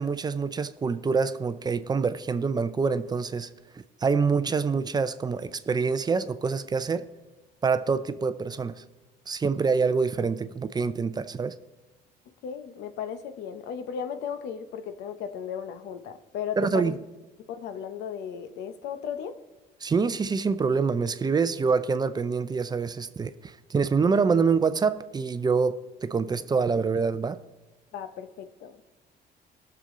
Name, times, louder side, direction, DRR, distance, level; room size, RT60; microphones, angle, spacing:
voice 1, 0.0-3.5 4.0-7.0 7.6-8.7 9.3-11.5 16.6-17.0 19.8-27.4, right 5 dB, 25° right, 13 dB, 0.5 m, -26 dB
voice 2, 12.4-17.0 17.5-19.4 27.9-28.8, left 8 dB, 80° left, 10 dB, 0.9 m, -35 dB
17.5 x 6.9 x 3.8 m, 1.1 s
cardioid pair, 110°, 17 cm